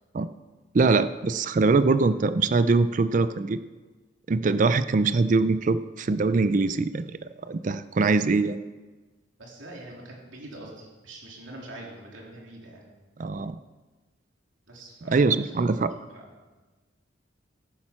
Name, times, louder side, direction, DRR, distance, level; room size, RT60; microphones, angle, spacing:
voice 1, 0.7-3.6 4.3-7.2 7.4-8.6 13.2-13.6 15.1-15.9, right 3 dB, 40° right, 13 dB, 0.4 m, -23 dB
voice 2, 9.4-12.9 14.7-15.5 15.9-16.6, right 1 dB, 85° right, -2 dB, 3.1 m, -44 dB
14.5 x 8.8 x 5.8 m, 1.3 s
head